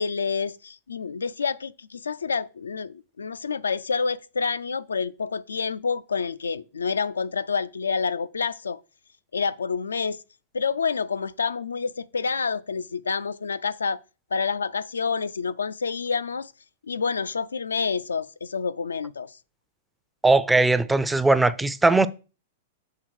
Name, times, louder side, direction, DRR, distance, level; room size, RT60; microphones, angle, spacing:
voice 1, 0.0-8.8 9.3-10.2 10.5-14.0 14.3-16.5 16.9-19.3, left 5 dB, 85° left, 0.3 m, -28 dB
voice 2, 20.2-22.1, right 2 dB, 5° right, 0.5 m, -19 dB
6.5 x 3.6 x 6.1 m
hypercardioid pair, 105°, 0 cm